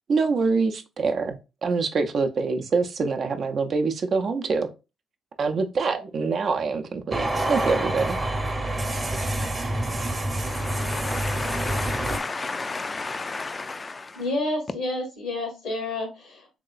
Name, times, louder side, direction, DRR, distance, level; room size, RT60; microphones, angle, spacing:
voice 1, 0.1-4.7 5.4-8.2, right 4 dB, 55° right, 0.5 m, -25 dB
sound 1, 7.1-12.2, right 1 dB, 30° right, 0.8 m, -27 dB
voice 2, 10.4-14.2, left 3 dB, 35° left, 0.4 m, -32 dB
voice 3, 14.1-16.6, left 2 dB, 85° left, 1.2 m, -29 dB
3.1 x 2.8 x 2.3 m
hypercardioid pair, 50°, 0 cm